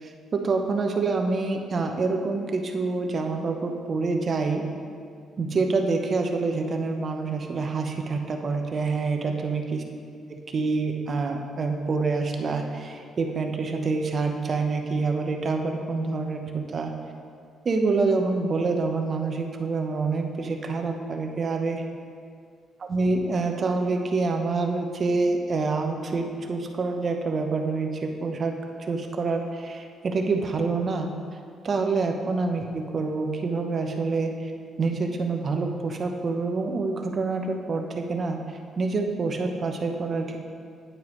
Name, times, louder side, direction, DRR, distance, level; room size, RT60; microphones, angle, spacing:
voice 1, 0.0-4.6 5.4-9.8 10.3-16.9 17.6-21.8 22.8-28.6 28.9-31.1 31.6-34.5 34.8-38.4 38.8-40.4, right 3 dB, 45° right, 4 dB, 0.9 m, -27 dB
9.3 x 9.2 x 3.2 m, 2.2 s
cardioid pair, 90°, 0 cm